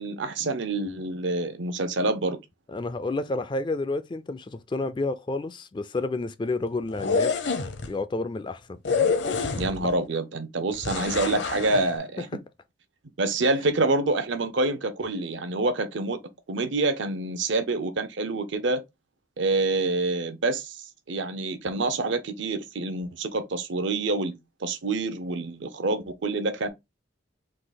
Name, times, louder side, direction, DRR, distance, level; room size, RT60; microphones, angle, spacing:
voice 1, 0.0-2.4 9.6-12.3 13.2-16.2 16.5-18.8 19.4-24.3 24.6-26.7, right 2 dB, 70° right, 0.7 m, -27 dB
voice 2, 2.7-7.3 7.9-8.8 9.8-9.9 11.7-11.9, left 2 dB, 25° left, 0.3 m, -30 dB
sound 1, 6.9-7.9 8.8-9.9 10.8-11.8, left 5 dB, 60° left, 0.7 m, -26 dB
3.9 x 2.8 x 3.9 m
head